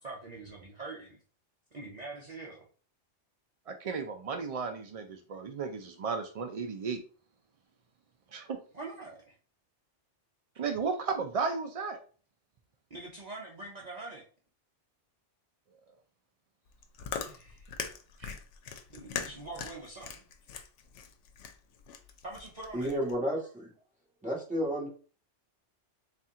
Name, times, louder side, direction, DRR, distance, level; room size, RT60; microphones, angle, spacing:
voice 1, 0.0-1.2 1.7-2.7 8.7-9.4 12.9-14.2 17.2-17.7 18.9-20.2 22.2-22.9, right 3 dB, 40° right, -3 dB, 0.8 m, -44 dB
voice 2, 3.7-7.0 8.3-8.6 10.6-12.0 18.2-18.3, right 5 dB, 70° right, 5 dB, 0.3 m, -34 dB
Chewing mastication, 16.7-23.1, left 7 dB, 85° left, 0.9 m, -41 dB
voice 3, 22.7-23.7 24.2-24.9, equal, 5° right, -4 dB, 1.4 m, -31 dB
4.2 x 2.5 x 3.6 m, 0.39 s
omnidirectional pair, 1.2 m